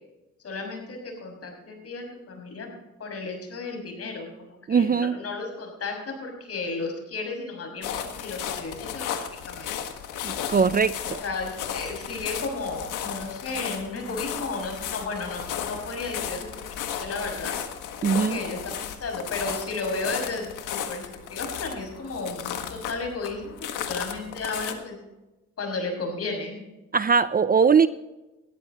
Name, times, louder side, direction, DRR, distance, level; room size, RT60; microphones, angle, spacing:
voice 1, 0.4-2.7 3.0-9.9 11.0-17.6 18.1-25.0 25.6-26.6, left 3 dB, 50° left, 3 dB, 6.1 m, -34 dB
voice 2, 4.7-5.1 10.2-10.9 18.0-18.4 26.9-27.9, right 6 dB, 30° right, 14 dB, 0.6 m, -20 dB
sound 1, 7.8-24.7, left 9 dB, 90° left, 1.7 m, -34 dB
19.5 x 13.5 x 3.0 m, 1.0 s
cardioid pair, 90°, 30 cm